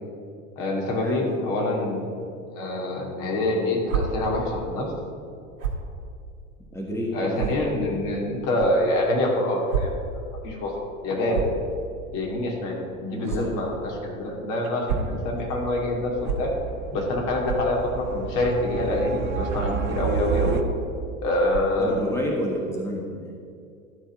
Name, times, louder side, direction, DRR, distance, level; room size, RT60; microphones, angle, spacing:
voice 1, 0.6-2.1 2.5-4.9 7.1-9.9 10.4-10.7 11.0-11.5 12.1-13.8 14.0-16.5 16.9-20.6 21.2-22.1, left 1 dB, 50° left, -1 dB, 2.5 m, -25 dB
sound 1, 3.8-4.0 5.6-5.8 6.6-6.7 7.3-7.5 8.5-8.7 9.7-9.8 10.2-10.3 11.3-11.6 13.2-13.4 14.6-15.1 16.2-16.4 17.4-17.6 18.4-18.7 19.5-19.7 20.5-20.8 21.5-21.8, right 9 dB, 75° right, 2.1 m, -29 dB
voice 2, 6.7-7.4 13.1-13.5 21.8-23.2, left 1 dB, 5° left, -1 dB, 1.5 m, -30 dB
sound 2, 15.1-20.6, right 7 dB, 25° right, 0.6 m, -31 dB
12.5 x 4.4 x 7.1 m, 2.4 s
figure-of-eight pair, 85°, 42 cm